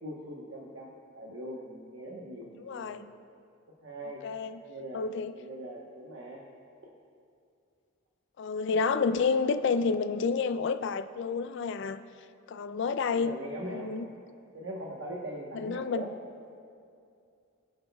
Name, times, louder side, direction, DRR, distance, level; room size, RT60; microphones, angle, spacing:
voice 1, 0.0-3.2 3.8-4.3 4.6-5.1 5.4-6.4 13.1-13.9 14.5-16.1, right 1 dB, 60° right, -2 dB, 1.1 m, -41 dB
voice 2, 2.6-3.1 4.2-4.6 4.9-5.3 8.4-12.0 12.5-13.4 13.7-14.1 15.5-16.1, left 5 dB, 60° left, 11 dB, 0.4 m, -29 dB
22.5 x 7.9 x 2.3 m, 2.4 s
head